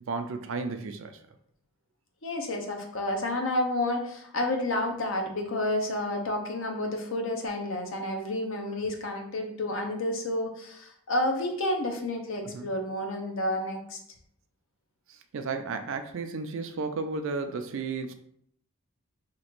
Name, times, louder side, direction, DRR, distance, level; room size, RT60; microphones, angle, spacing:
voice 1, 0.1-1.2 12.5-12.7 15.3-18.1, right 4 dB, 60° right, 8 dB, 0.4 m, -33 dB
voice 2, 2.2-14.0, left 1 dB, 60° left, 3 dB, 0.6 m, -30 dB
3.0 x 2.4 x 4.3 m, 0.68 s
head